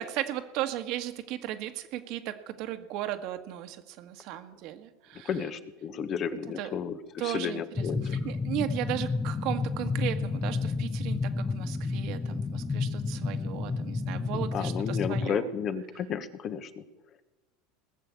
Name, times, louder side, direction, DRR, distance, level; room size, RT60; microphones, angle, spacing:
voice 1, 0.0-5.3 6.6-6.7 7.2-15.5, right 13 dB, 60° right, 7 dB, 1.7 m, -36 dB
voice 2, 5.2-8.2 14.3-16.8, left 7 dB, 40° left, 11 dB, 1.2 m, -33 dB
sound 1, 7.8-15.3, left 4 dB, 15° left, 0.6 m, -31 dB
19.0 x 7.0 x 8.3 m, 1.1 s
supercardioid pair, 115°, 0 cm